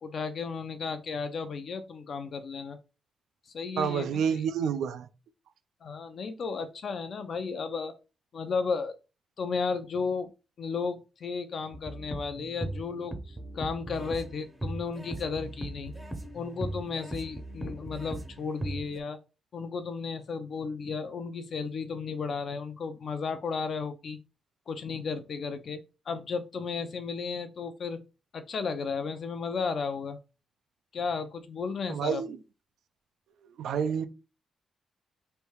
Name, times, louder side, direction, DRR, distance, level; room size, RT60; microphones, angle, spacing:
voice 1, 0.0-2.8 3.5-4.4 5.8-7.9 8.3-8.9 9.4-10.3 10.6-15.9 16.3-19.2 19.5-24.2 24.7-25.8 26.1-28.0 28.3-30.2 30.9-32.2, left 5 dB, 50° left, 0.6 m, -34 dB
voice 2, 3.8-5.1 31.9-32.4 33.6-34.1, right 7 dB, 85° right, 0.5 m, -29 dB
sound 1, 11.7-19.0, right 1 dB, 15° right, 0.7 m, -38 dB
3.4 x 2.7 x 4.6 m
cardioid pair, 140°, 0 cm